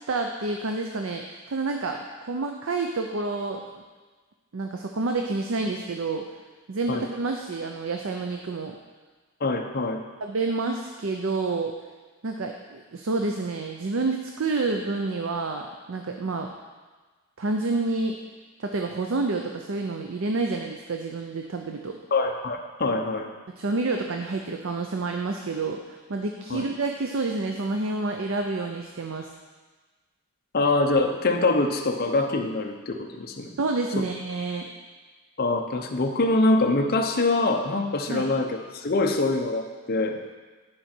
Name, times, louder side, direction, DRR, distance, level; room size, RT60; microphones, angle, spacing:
voice 1, 0.1-3.6 4.5-6.2 6.7-8.8 10.2-11.7 12.2-16.5 17.4-18.2 18.6-22.0 23.6-29.3 33.6-34.7 38.1-38.3, right 3 dB, 60° right, 3 dB, 0.5 m, -28 dB
voice 2, 9.4-10.0 22.1-23.3 26.5-26.6 30.5-33.5 34.0-34.1 35.4-40.2, left 2 dB, 45° left, 3 dB, 0.7 m, -24 dB
11.0 x 5.1 x 4.4 m, 1.3 s
head